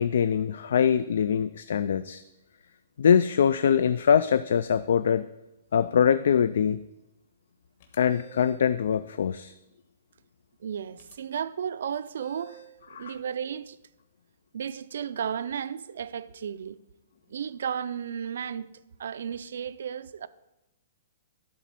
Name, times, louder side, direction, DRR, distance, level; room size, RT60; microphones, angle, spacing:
voice 1, 0.0-2.2 3.0-5.3 5.7-6.9 8.0-9.5 12.9-13.1, left 7 dB, 65° left, 0.3 m, -23 dB
sound 1, 7.8-8.7 11.0-11.2 12.2-12.8, right 3 dB, 45° left, 1.4 m, -50 dB
voice 2, 10.6-13.8 14.5-16.8 17.3-18.7 19.0-20.3, right 8 dB, 65° right, 0.4 m, -34 dB
11.0 x 4.1 x 7.6 m
hypercardioid pair, 170°, 0 cm